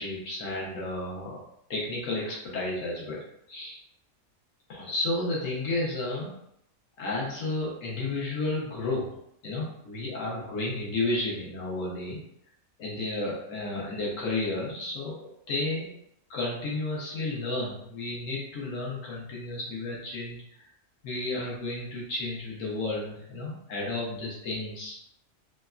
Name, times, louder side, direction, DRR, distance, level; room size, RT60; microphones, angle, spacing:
voice 1, 0.0-1.4 1.7-3.8 4.7-6.4 7.0-9.2 9.4-12.2 12.8-15.9 16.3-20.7 21.0-25.0, left 2 dB, 65° left, -4 dB, 1.2 m, -32 dB
3.3 x 2.1 x 2.3 m, 0.74 s
omnidirectional pair, 1.5 m